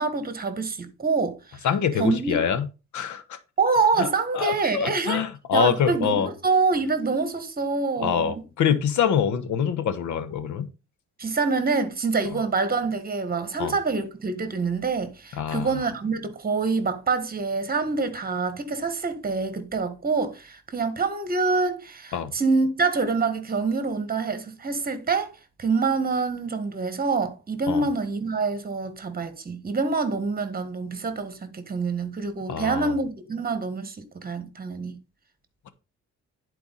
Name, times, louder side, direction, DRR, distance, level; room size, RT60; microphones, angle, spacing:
voice 1, 0.0-1.7 2.0-2.4 3.6-5.2 5.5-8.4 11.2-25.3 25.6-35.0, right 4 dB, 30° right, 1.6 m, -26 dB
voice 2, 1.6-2.7 2.9-3.4 4.0-4.1 4.4-6.3 8.0-10.7 13.6-13.7 15.4-15.7 22.1-22.3 27.7-27.9 32.5-32.9, left 8 dB, 70° left, 1.1 m, -25 dB
10.5 x 4.6 x 4.1 m
cardioid pair, 90°, 30 cm